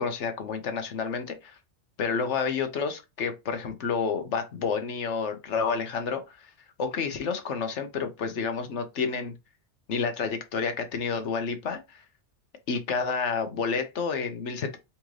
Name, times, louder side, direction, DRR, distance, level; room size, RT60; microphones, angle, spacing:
voice 1, 0.0-1.6 2.0-6.5 6.8-9.3 9.9-12.0 12.7-14.8, left 5 dB, 75° left, 1.2 m, -30 dB
4.3 x 3.7 x 3.1 m
omnidirectional pair, 1.2 m